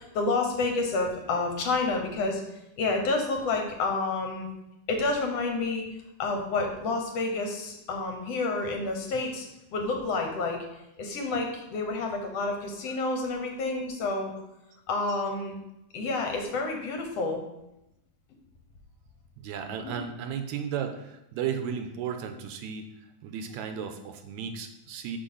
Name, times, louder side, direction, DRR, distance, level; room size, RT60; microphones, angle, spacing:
voice 1, 0.0-2.4 2.8-4.5 4.9-5.9 6.2-10.6 11.0-14.3 14.9-15.6 15.9-17.4 19.8-20.0, left 3 dB, 65° left, 3 dB, 1.9 m, -29 dB
voice 2, 19.4-22.9 23.2-25.2, right 7 dB, 80° right, 6 dB, 1.9 m, -34 dB
6.3 x 6.0 x 5.5 m, 0.89 s
omnidirectional pair, 3.4 m